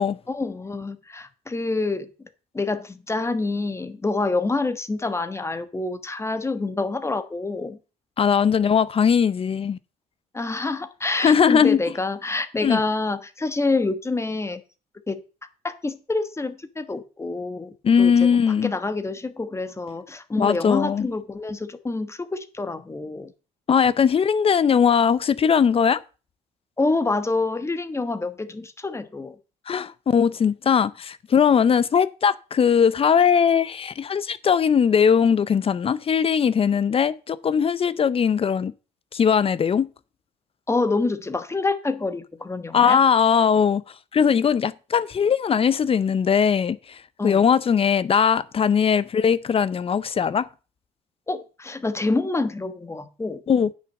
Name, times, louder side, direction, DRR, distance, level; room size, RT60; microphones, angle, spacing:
voice 1, 0.3-2.1 2.5-7.8 10.3-14.6 15.1-15.2 15.6-23.3 26.8-29.4 40.7-43.0 47.2-47.4 51.3-53.4, left 3 dB, 15° left, 1.2 m, -27 dB
voice 2, 8.2-9.8 11.2-11.8 12.6-12.8 17.8-18.7 20.4-21.1 23.7-26.0 29.7-38.7 39.1-39.9 42.7-43.8 44.1-50.5 53.5-53.7, left 7 dB, 35° left, 0.6 m, -20 dB
9.9 x 6.0 x 7.0 m
cardioid pair, 110°, 17 cm